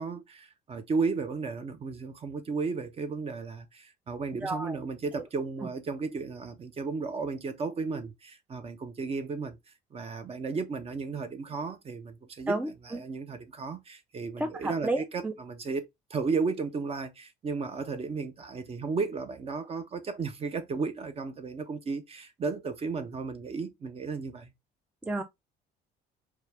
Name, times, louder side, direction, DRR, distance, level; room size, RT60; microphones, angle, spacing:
voice 1, 0.0-9.6 9.9-12.6 12.9-15.8 16.1-24.5, right 4 dB, 35° right, 0.9 m, -34 dB
voice 2, 4.4-4.8 12.5-13.0 14.4-15.3 25.0-25.2, right 2 dB, 10° right, 0.5 m, -31 dB
4.6 x 2.4 x 3.3 m
cardioid pair, 110°, 17 cm